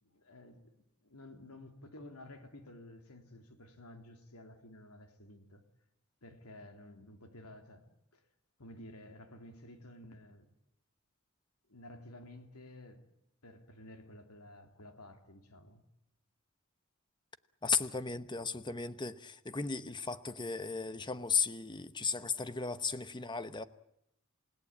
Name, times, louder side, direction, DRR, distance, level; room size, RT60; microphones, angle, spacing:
voice 1, 0.0-5.6 6.2-8.2 8.6-10.5 11.7-13.0 13.4-15.8, left 1 dB, 90° left, 3.0 m, -53 dB
voice 2, 17.6-23.6, left 5 dB, 20° left, 0.9 m, -35 dB
28.5 x 17.5 x 8.7 m
head